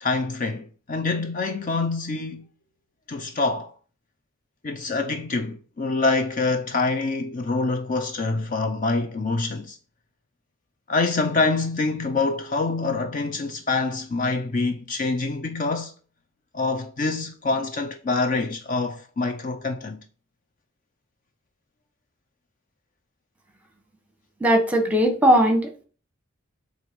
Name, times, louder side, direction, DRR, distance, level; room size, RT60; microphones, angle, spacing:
voice 1, 0.0-2.4 3.1-3.7 4.6-9.8 10.9-15.9 16.5-20.0, left 3 dB, 35° left, 0.5 m, -25 dB
voice 2, 24.4-25.8, equal, 5° right, 1.1 m, -19 dB
7.9 x 3.1 x 5.3 m
head